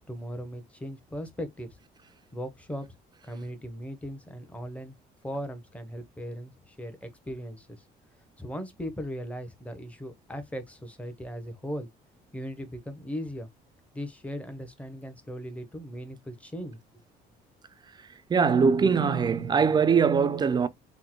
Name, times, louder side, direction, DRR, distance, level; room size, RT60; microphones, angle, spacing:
voice 1, 0.0-1.7 2.3-2.9 3.2-4.9 5.2-7.7 8.4-11.9 12.3-13.5 13.9-16.8, equal, 10° left, 0.7 m, -38 dB
voice 2, 18.3-20.7, right 6 dB, 25° right, 0.3 m, -22 dB
3.6 x 2.1 x 2.9 m
cardioid pair, 110°, 17 cm